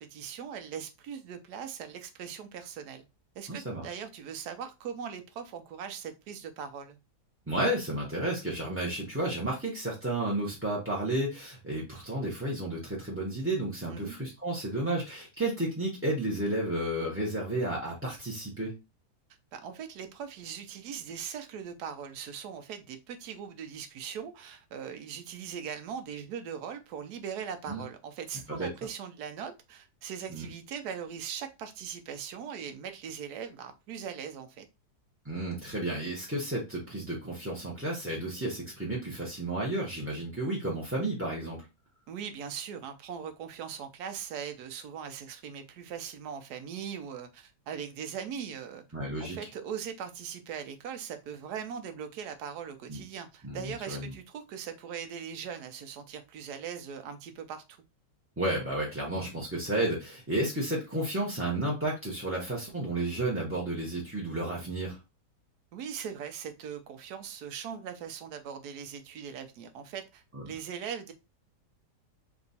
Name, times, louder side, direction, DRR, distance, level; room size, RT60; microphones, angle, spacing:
voice 1, 0.0-3.1 3.4-7.0 13.9-14.2 19.5-34.7 42.1-48.8 49.2-57.8 65.7-71.1, right 7 dB, 75° right, 1.2 m, -40 dB
voice 2, 3.5-3.9 7.5-18.8 27.7-27.8 28.5-28.7 30.3-30.4 35.2-41.7 48.9-49.4 52.9-53.0 53.4-54.1 58.4-65.0 70.3-70.4, right 1 dB, 10° right, 0.6 m, -32 dB
3.5 x 2.9 x 4.0 m
omnidirectional pair, 1.8 m